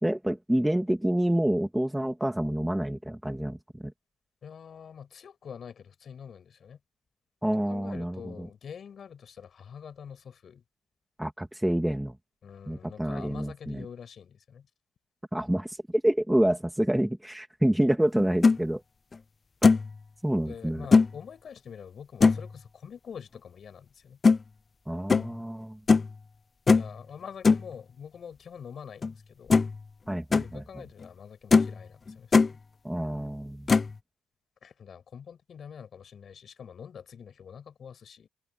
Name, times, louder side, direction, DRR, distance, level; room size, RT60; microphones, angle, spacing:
voice 1, 0.0-3.9 7.4-8.5 11.2-12.2 12.7-13.8 15.3-18.8 20.2-20.9 24.9-25.8 30.1-30.6 32.8-33.7, right 1 dB, 5° right, 2.4 m, -28 dB
voice 2, 4.4-6.8 7.7-10.6 12.4-14.7 20.4-24.2 26.7-29.5 30.4-32.6 34.6-38.3, left 7 dB, 40° left, 7.1 m, -45 dB
sound 1, 18.2-18.6 19.1-19.2 19.6-19.9 20.9-21.1 22.2-22.5 24.2-24.4 25.1-25.3 25.9-26.1 26.7-26.9 27.4-27.6 29.0-29.1 29.5-29.8 30.1-30.5 31.0-31.1 31.5-31.8 32.1-32.5 33.7-33.9, left 4 dB, 25° left, 0.6 m, -20 dB
cardioid pair, 150°, 0 cm